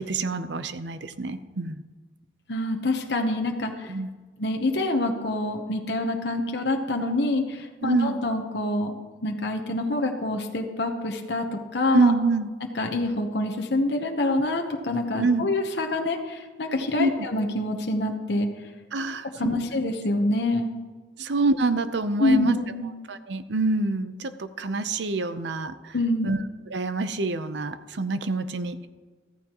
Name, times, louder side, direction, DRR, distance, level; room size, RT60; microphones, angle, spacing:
voice 1, 0.0-1.8 3.9-4.1 7.8-8.2 11.9-12.5 15.1-15.5 17.0-17.3 18.9-19.7 21.2-22.6 23.1-26.0 26.2-26.4 26.7-28.9, right 3 dB, 70° right, 11 dB, 0.7 m, -26 dB
voice 2, 2.5-3.9 4.4-8.9 9.2-11.5 11.7-12.1 12.8-18.5 19.4-20.7 22.2-22.9 25.9-26.3, left 2 dB, 65° left, 3 dB, 1.0 m, -26 dB
14.5 x 14.0 x 3.0 m, 1.4 s
head